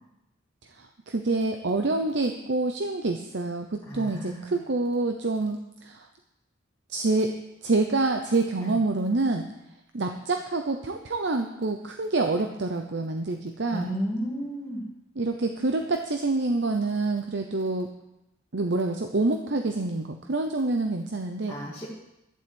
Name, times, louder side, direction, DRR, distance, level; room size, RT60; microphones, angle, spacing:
voice 1, 0.8-6.1 6.9-9.5 9.9-14.0 15.2-17.9 18.5-21.6, right 2 dB, 60° right, 5 dB, 0.8 m, -27 dB
voice 2, 3.9-4.6 8.6-8.7 13.7-14.9 21.5-21.9, equal, 15° left, -9 dB, 2.1 m, -32 dB
11.5 x 7.9 x 7.9 m, 0.89 s
head